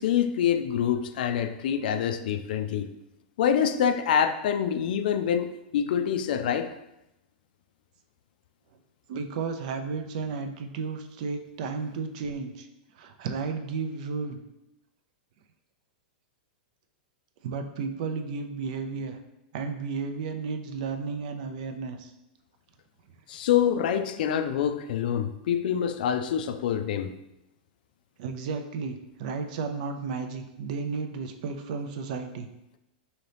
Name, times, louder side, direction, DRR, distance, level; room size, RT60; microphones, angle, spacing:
voice 1, 0.0-2.9 3.4-6.7 23.3-27.1, left 8 dB, 65° left, 9 dB, 0.3 m, -26 dB
voice 2, 9.1-12.7 13.0-14.4 17.4-19.2 19.5-22.1 28.2-32.5, right 5 dB, 55° right, 7 dB, 0.4 m, -33 dB
3.9 x 2.8 x 3.3 m, 0.90 s
supercardioid pair, 155°, 5 cm